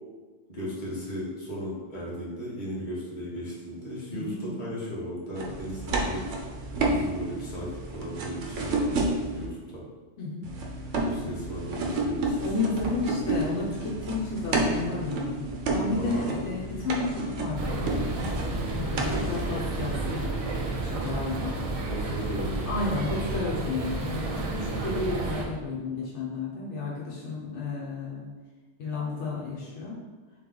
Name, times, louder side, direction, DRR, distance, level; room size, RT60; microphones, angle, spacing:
voice 1, 0.5-6.5 6.8-9.8 11.0-12.5 16.0-16.5 21.9-22.7, equal, 40° left, -7 dB, 1.3 m, -36 dB
voice 2, 4.1-4.6 10.2-10.5 11.2-11.3 12.4-20.3 20.8-21.6 22.7-28.3 28.8-30.0, left 3 dB, 80° left, -5 dB, 1.1 m, -32 dB
sound 1, 5.3-9.5 10.4-19.9, right 2 dB, 90° right, 1.0 m, -31 dB
sound 2, 17.6-25.4, right 3 dB, 50° right, 0.4 m, -31 dB
3.6 x 3.2 x 3.7 m, 1.3 s
omnidirectional pair, 1.2 m